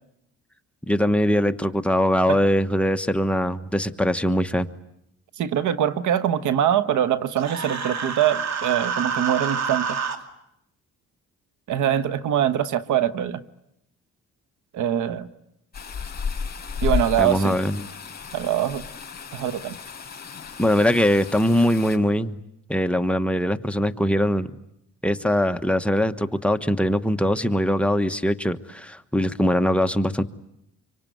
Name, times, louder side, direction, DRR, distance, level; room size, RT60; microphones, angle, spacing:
voice 1, 0.9-4.7 17.2-17.9 20.6-22.4 22.7-24.5 25.0-30.2, equal, 5° left, 7 dB, 1.3 m, -22 dB
voice 2, 5.4-10.0 11.7-13.4 14.7-15.3 16.8-17.6 18.3-18.8 19.3-19.8, right 10 dB, 80° right, 12 dB, 1.3 m, -23 dB
Human voice, 7.4-10.2, right 6 dB, 60° right, 2.7 m, -28 dB
sound 1, 15.7-22.0, left 6 dB, 30° left, 4.9 m, -32 dB
26.0 x 24.5 x 9.3 m, 0.79 s
cardioid pair, 90°, 30 cm